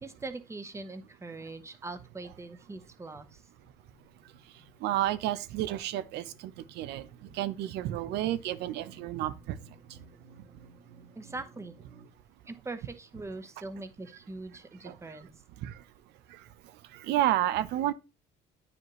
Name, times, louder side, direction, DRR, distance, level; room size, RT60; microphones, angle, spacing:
voice 1, 0.0-3.4 11.1-11.7 12.5-15.3, right 3 dB, 15° right, 0.9 m, -42 dB
sound 1, 2.5-12.1, right 2 dB, 30° right, 1.8 m, -58 dB
voice 2, 4.8-7.1 7.3-9.6 14.8-15.0 15.6-15.8 16.3-16.4 16.9-17.9, right 13 dB, 80° right, 0.6 m, -31 dB
9.4 x 5.1 x 3.0 m
cardioid pair, 110°, 17 cm